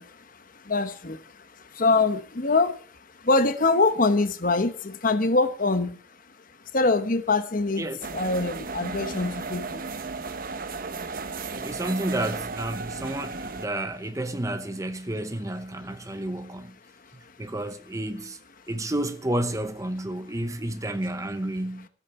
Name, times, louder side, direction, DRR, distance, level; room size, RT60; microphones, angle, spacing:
voice 1, 0.0-6.0 6.7-7.9 8.1-9.8 11.5-11.6, left 3 dB, 45° left, 1.1 m, -24 dB
sound 1, 8.0-13.7, right 4 dB, 45° right, 1.0 m, -34 dB
voice 2, 11.5-16.8 17.4-18.4 18.7-21.9, right 1 dB, 15° right, 0.8 m, -31 dB
16.0 x 8.6 x 6.9 m
head